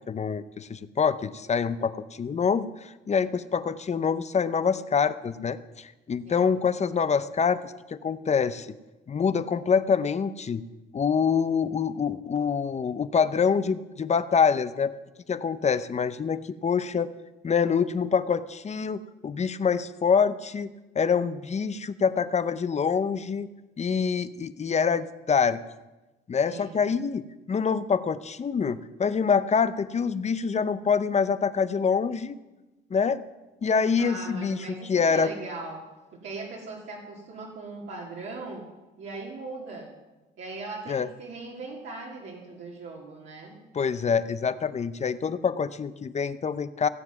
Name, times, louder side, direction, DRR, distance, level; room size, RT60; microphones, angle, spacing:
voice 1, 0.1-8.7 9.1-10.6 10.9-14.9 15.3-17.1 17.4-23.5 23.8-25.6 26.3-32.4 32.9-33.2 33.6-35.3 40.9-41.1 43.7-46.9, left 6 dB, 35° left, 14 dB, 0.7 m, -26 dB
voice 2, 26.4-26.9 34.0-35.8 36.1-38.7 39.0-39.9 40.4-43.6, right 3 dB, 70° right, -4 dB, 2.5 m, -39 dB
16.5 x 7.5 x 6.0 m, 1.1 s
cardioid pair, 90°, 20 cm